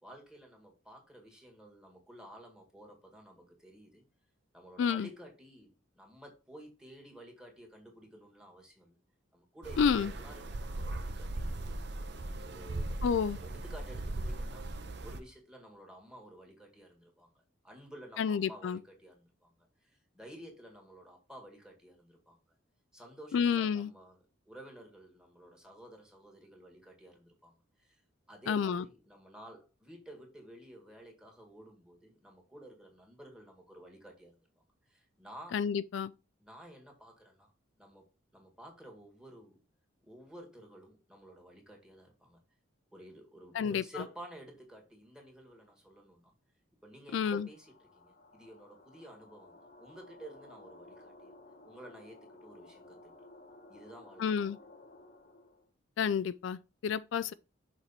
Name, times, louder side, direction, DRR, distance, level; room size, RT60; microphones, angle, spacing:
voice 1, 0.0-4.0 4.5-9.0 9.3-13.1 13.3-14.7 15.0-19.5 19.8-22.4 22.9-24.2 24.5-28.0 28.3-35.6 36.4-37.5 37.8-39.6 40.0-42.4 42.9-46.3 46.8-51.4 51.6-53.1 53.7-54.4, right 1 dB, 5° right, 1.8 m, -53 dB
voice 2, 4.8-5.1 9.8-10.1 13.0-13.4 18.2-18.8 23.3-23.9 28.5-28.8 35.5-36.1 43.5-43.8 47.1-47.5 54.2-54.6 56.0-57.3, left 7 dB, 65° left, 0.3 m, -30 dB
sound 1, 9.6-15.2, right 2 dB, 55° right, 0.7 m, -38 dB
sound 2, 47.4-55.7, left 2 dB, 40° left, 1.0 m, -56 dB
6.5 x 4.6 x 4.1 m
head